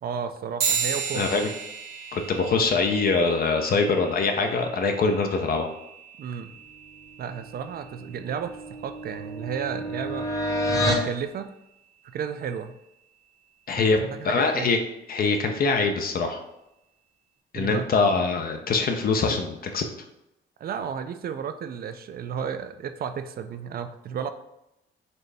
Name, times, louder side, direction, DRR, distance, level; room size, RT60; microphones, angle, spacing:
voice 1, 0.0-1.3 6.2-6.5 7.2-10.3 10.7-11.5 12.0-12.8 13.7-14.8 17.5-17.9 20.6-24.3, right 7 dB, 50° right, 9 dB, 0.4 m, -33 dB
sound 1, 0.6-10.4, right 6 dB, 75° right, 0.9 m, -35 dB
voice 2, 1.1-1.5 2.1-5.7 13.7-14.8 15.1-16.4 17.5-19.8, left 4 dB, 50° left, 4 dB, 0.5 m, -23 dB
sound 2, 7.9-11.1, equal, 15° left, 0.8 m, -29 dB
4.2 x 2.6 x 3.3 m, 0.87 s
cardioid pair, 90°, 20 cm